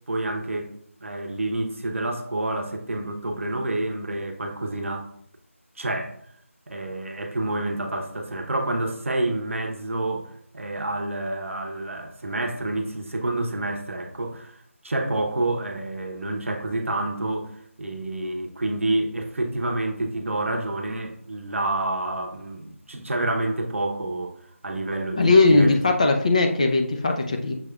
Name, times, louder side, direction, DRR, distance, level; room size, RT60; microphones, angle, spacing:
voice 1, 0.1-0.7 1.0-5.1 5.8-6.2 6.7-14.6 14.8-17.5 17.8-24.4 24.6-25.7, right 2 dB, 65° right, 0.7 m, -28 dB
voice 2, 25.2-27.5, left 3 dB, 30° left, 0.4 m, -19 dB
6.1 x 3.3 x 2.3 m
figure-of-eight pair, 165°, 8 cm